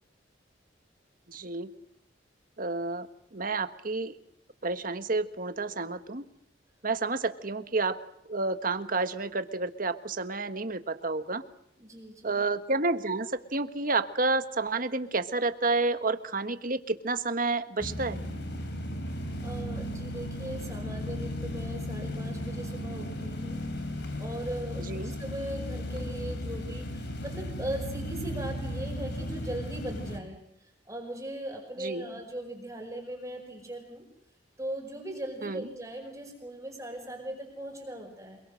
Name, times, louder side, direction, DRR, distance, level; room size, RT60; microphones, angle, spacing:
voice 1, 1.3-1.7 2.6-3.1 3.3-4.1 4.6-6.2 6.8-8.0 8.3-11.4 12.2-18.2 24.9-25.1 31.8-32.0 35.4-35.6, right 3 dB, 50° right, 9 dB, 1.5 m, -30 dB
voice 2, 11.8-12.5 19.4-23.6 24.2-34.0 34.6-38.4, right 1 dB, 15° right, 0 dB, 5.4 m, -39 dB
sound 1, 17.8-30.2, left 1 dB, 65° left, 3.5 m, -35 dB
28.0 x 22.5 x 6.5 m, 0.76 s
head